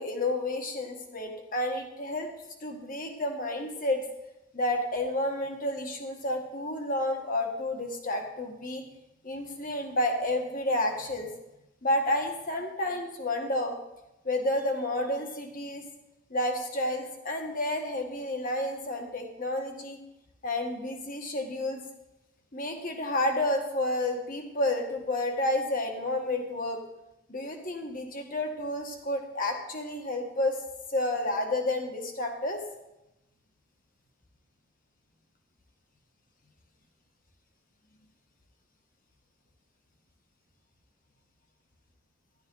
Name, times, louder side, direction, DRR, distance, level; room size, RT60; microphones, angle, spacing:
voice 1, 0.0-2.3 2.6-4.0 4.5-8.8 9.2-11.4 11.8-13.7 14.2-15.8 16.3-20.0 20.4-21.8 22.5-26.8 27.3-30.6 30.9-32.6, left 1 dB, 40° left, 3 dB, 1.6 m, -30 dB
13.0 x 11.5 x 3.9 m, 0.92 s
head